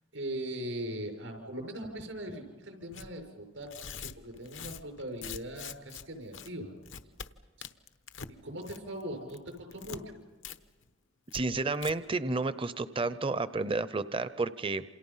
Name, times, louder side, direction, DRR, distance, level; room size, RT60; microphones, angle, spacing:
voice 1, 0.1-3.7 4.0-6.7 8.4-10.2, right 1 dB, 85° right, 4 dB, 6.1 m, -40 dB
Tearing, 2.9-3.1 3.6-6.0 6.3-6.5 6.8-7.3 7.6-8.3 8.6-9.0 9.3-10.0 10.4-10.6 10.8-10.9 11.3-11.4 11.7-11.9, left 7 dB, 80° left, 1.1 m, -43 dB
voice 2, 11.3-14.8, right 3 dB, 30° right, 14 dB, 0.7 m, -31 dB
28.5 x 27.5 x 5.6 m, 1.4 s
head